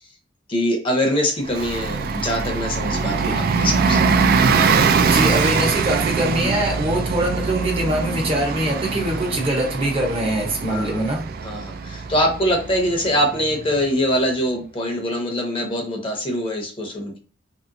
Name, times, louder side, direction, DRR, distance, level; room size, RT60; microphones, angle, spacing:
voice 1, 0.5-4.0 6.4-6.5 10.7-11.0 11.4-17.2, equal, 30° left, 2 dB, 0.7 m, -23 dB
Bus, 1.5-13.8, right 5 dB, 50° right, 0.3 m, -22 dB
voice 2, 5.1-11.3, right 1 dB, 30° right, 2 dB, 0.7 m, -23 dB
2.9 x 2.9 x 2.6 m, 0.38 s
head